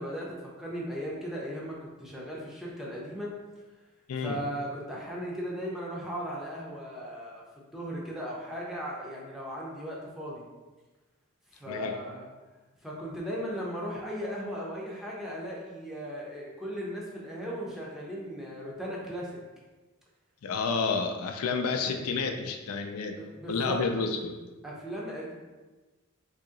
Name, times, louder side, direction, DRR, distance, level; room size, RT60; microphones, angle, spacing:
voice 1, 0.0-3.3 4.2-7.4 7.7-10.4 11.5-12.3 12.8-19.4 23.2-23.8 24.6-25.3, equal, ahead, -5 dB, 0.6 m, -37 dB
voice 2, 20.4-23.2 23.5-24.3, left 4 dB, 85° left, 4 dB, 0.4 m, -30 dB
2.9 x 2.7 x 3.7 m, 1.2 s
head